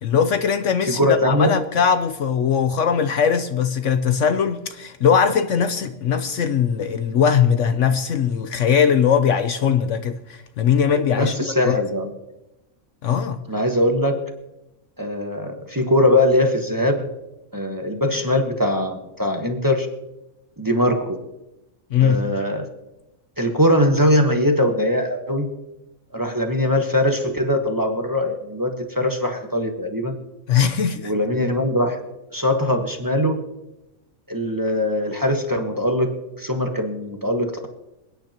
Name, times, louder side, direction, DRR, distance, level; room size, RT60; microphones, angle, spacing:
voice 1, 0.0-11.8 13.0-13.4 21.9-22.3 30.5-31.1, left 7 dB, 65° left, 1.0 m, -20 dB
voice 2, 0.9-1.5 11.1-12.1 13.5-14.2 15.0-17.1 17.5-19.9 20.6-21.2 22.0-22.7 23.4-25.5 26.1-30.1 31.0-32.0 32.3-33.4 34.3-37.7, left 1 dB, 15° right, 1.3 m, -21 dB
27.0 x 9.8 x 2.9 m
omnidirectional pair, 1.5 m